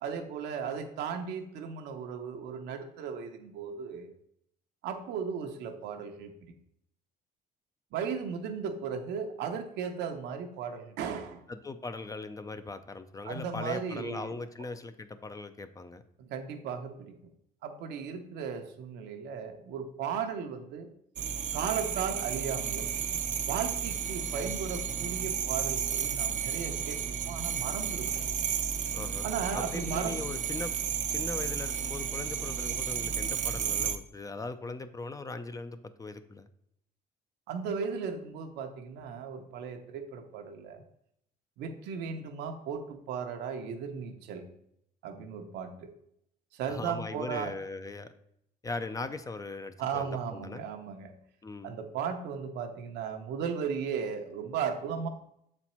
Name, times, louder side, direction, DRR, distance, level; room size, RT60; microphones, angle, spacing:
voice 1, 0.0-4.1 4.8-6.5 7.9-11.4 13.2-14.4 16.3-17.2 17.6-20.9 21.5-22.9 23.5-27.0 27.3-28.2 29.2-30.2 37.5-40.8 41.6-44.4 45.0-45.9 46.5-47.5 49.8-51.1 51.6-55.1, right 6 dB, 85° right, 5 dB, 0.9 m, -36 dB
voice 2, 11.5-16.0 28.9-30.7 31.1-36.5 46.7-48.1 48.6-50.7 51.4-51.8, left 3 dB, 20° left, 10 dB, 0.4 m, -39 dB
sound 1, 21.2-34.0, right 8 dB, 50° right, 0.5 m, -32 dB
6.9 x 4.4 x 4.3 m, 0.73 s
cardioid pair, 110°, 17 cm